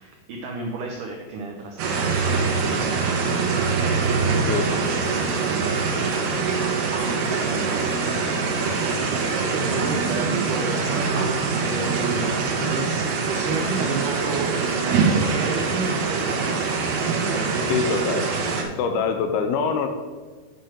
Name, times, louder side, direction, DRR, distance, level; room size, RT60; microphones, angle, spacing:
voice 1, 0.0-3.4 3.7-6.6 7.2-16.6 17.2-17.6, right 3 dB, 90° right, 1 dB, 1.8 m, -33 dB
sound 1, 1.8-18.6, right 4 dB, 70° right, 2.8 m, -24 dB
voice 2, 17.7-18.3 18.8-19.9, left 6 dB, 80° left, 6 dB, 2.5 m, -24 dB
8.8 x 6.5 x 4.5 m, 1.4 s
omnidirectional pair, 4.8 m